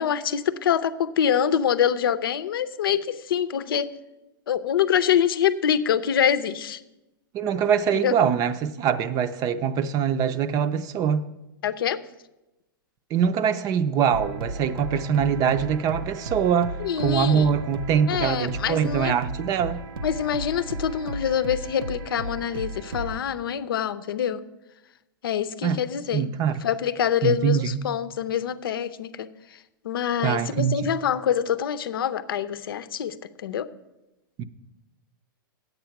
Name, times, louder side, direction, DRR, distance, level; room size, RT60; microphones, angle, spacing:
voice 1, 0.0-3.9 4.5-6.8 7.9-8.2 11.6-12.0 16.8-17.5 18.1-19.1 20.0-24.4 25.2-26.3 26.6-29.3 29.8-33.7, left 9 dB, 85° left, 0.6 m, -25 dB
voice 2, 7.3-11.2 13.1-19.8 25.6-25.8 26.1-26.6 27.2-27.8 30.2-30.8 34.4-34.5, right 7 dB, 30° right, 0.5 m, -23 dB
sound 1, 14.1-23.2, right 2 dB, 85° right, 0.7 m, -34 dB
9.5 x 8.1 x 5.8 m
hypercardioid pair, 135°, 12 cm